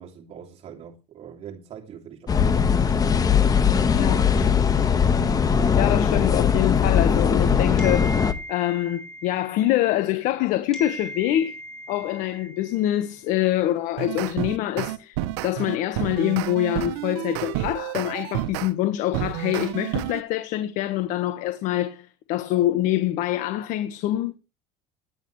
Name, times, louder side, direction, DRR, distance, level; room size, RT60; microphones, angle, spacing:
voice 1, 0.0-2.6, right 8 dB, 45° right, 2.8 m, -42 dB
sound 1, 2.3-8.3, left 7 dB, 25° left, 1.5 m, -20 dB
voice 2, 5.8-8.2 8.5-11.6 11.9-15.2 15.4-24.3, left 13 dB, 70° left, 1.5 m, -25 dB
sound 2, 7.8-10.4 10.7-13.3, equal, 5° left, 6.7 m, -39 dB
sound 3, 13.8-18.7 19.1-20.2, right 14 dB, 85° right, 1.1 m, -30 dB
19.0 x 10.5 x 3.3 m
supercardioid pair, 105°, 14 cm